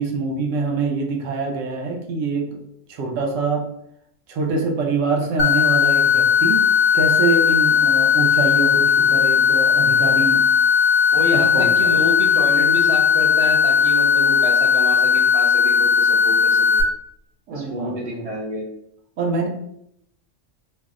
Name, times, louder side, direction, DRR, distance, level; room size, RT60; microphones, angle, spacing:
voice 1, 0.0-2.5 2.9-3.6 4.3-6.7 6.9-10.4 11.3-12.0 17.5-18.3 19.2-19.5, right 4 dB, 80° right, 1 dB, 1.0 m, -25 dB
sound 1, 5.4-16.8, left 7 dB, 60° left, 0.6 m, -17 dB
voice 2, 11.1-16.7 17.5-18.6, left 1 dB, 45° right, -2 dB, 0.5 m, -28 dB
2.6 x 2.1 x 3.5 m, 0.75 s
omnidirectional pair, 1.3 m